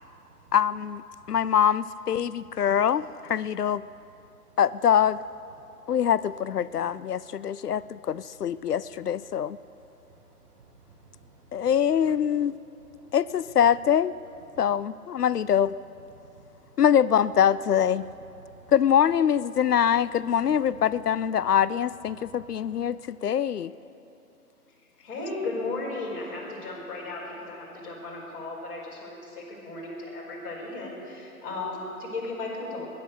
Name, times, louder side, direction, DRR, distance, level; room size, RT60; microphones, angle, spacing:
voice 1, 0.0-0.5 1.2-1.3 10.1-11.7 16.1-16.7 18.4-18.7 22.1-22.3, right 3 dB, 20° right, 1 dB, 1.6 m, -55 dB
voice 2, 0.5-1.0 1.3-3.8 4.6-5.2 5.9-9.6 11.5-12.5 13.1-14.1 14.6-15.7 16.8-18.0 18.7-23.7, left 9 dB, 75° left, 18 dB, 0.6 m, -24 dB
voice 3, 25.0-32.9, left 2 dB, 35° left, -4 dB, 5.0 m, -35 dB
20.5 x 10.5 x 6.7 m, 2.8 s
figure-of-eight pair, 150°, 47 cm